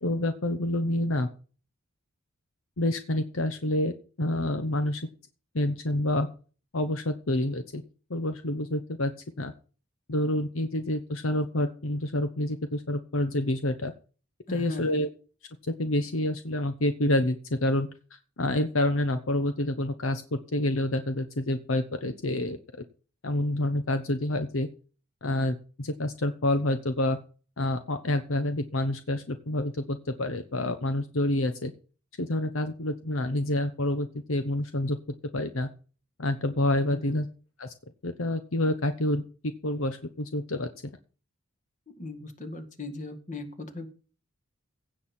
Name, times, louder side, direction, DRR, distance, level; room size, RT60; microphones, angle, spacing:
voice 1, 0.0-1.3 2.8-5.0 5.5-6.3 6.7-7.8 8.1-9.1 9.4-9.5 10.1-13.9 14.5-15.1 15.6-17.9 18.4-22.6 23.2-24.7 25.2-27.2 27.6-31.7 32.2-35.0 35.3-35.7 36.2-37.3 37.6-37.7 38.0-39.2 39.6-40.7, left 1 dB, 70° left, 9 dB, 0.9 m, -28 dB
voice 2, 14.5-15.0 36.9-37.2 42.0-43.9, left 2 dB, 35° left, 7 dB, 1.9 m, -38 dB
16.5 x 7.6 x 4.3 m, 0.37 s
head